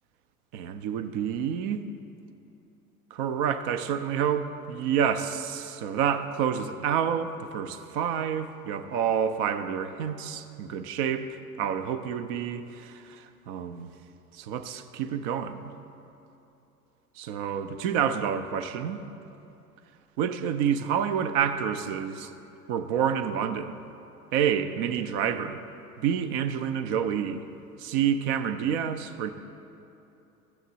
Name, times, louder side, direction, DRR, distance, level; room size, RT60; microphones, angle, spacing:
voice 1, 0.5-1.8 3.1-11.3 11.6-13.9 14.3-15.7 17.2-19.0 20.2-22.3 22.7-23.8 24.3-25.6 26.0-27.4 27.8-29.3, right 8 dB, 35° right, 10 dB, 0.4 m, -28 dB
13.0 x 7.2 x 2.8 m, 2.8 s
figure-of-eight pair, 85°, 46 cm